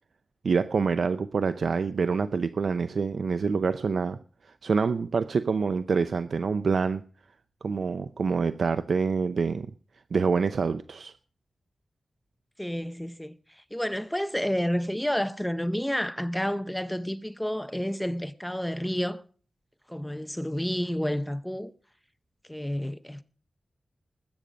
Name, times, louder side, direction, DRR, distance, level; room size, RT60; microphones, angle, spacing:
voice 1, 0.4-4.2 4.6-7.0 7.6-9.7 10.1-11.1, right 5 dB, 75° right, 0.6 m, -26 dB
voice 2, 12.6-13.3 13.7-19.2 19.9-21.7 22.5-23.2, equal, 5° left, 0.6 m, -30 dB
20.0 x 8.9 x 5.1 m
wide cardioid pair, 140°, 0 cm